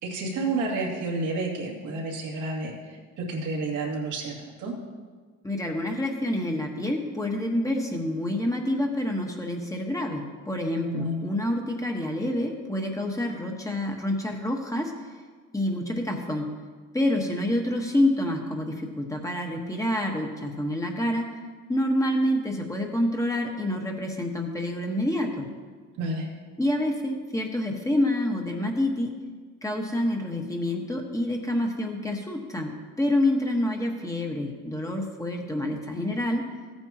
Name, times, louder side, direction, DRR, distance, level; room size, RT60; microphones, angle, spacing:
voice 1, 0.0-4.3 4.6-4.8 10.9-11.2 26.0-26.3, right 2 dB, 85° right, -2 dB, 2.5 m, -30 dB
voice 2, 5.4-14.9 15.5-16.5 16.9-21.4 21.7-25.5 26.6-29.2 29.6-36.5, left 1 dB, 10° left, 1 dB, 1.4 m, -27 dB
14.5 x 9.0 x 2.9 m, 1.5 s
cardioid pair, 90°, 30 cm